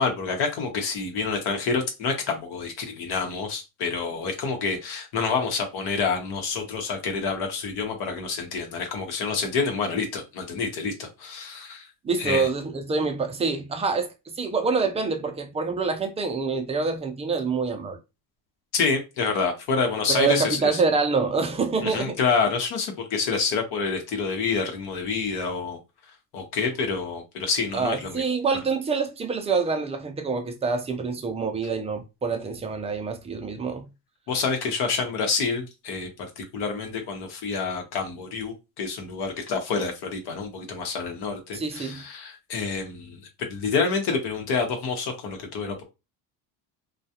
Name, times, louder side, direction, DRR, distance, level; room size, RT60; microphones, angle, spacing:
voice 1, 0.0-11.9 12.2-12.5 18.7-20.8 21.8-25.8 26.3-28.2 34.3-43.2 43.5-45.8, left 5 dB, 60° left, 1.0 m, -28 dB
voice 2, 12.0-18.0 20.1-22.2 27.7-33.9 41.5-42.0, right 4 dB, 15° right, 0.5 m, -26 dB
2.3 x 2.3 x 2.8 m
supercardioid pair, 110°, 42 cm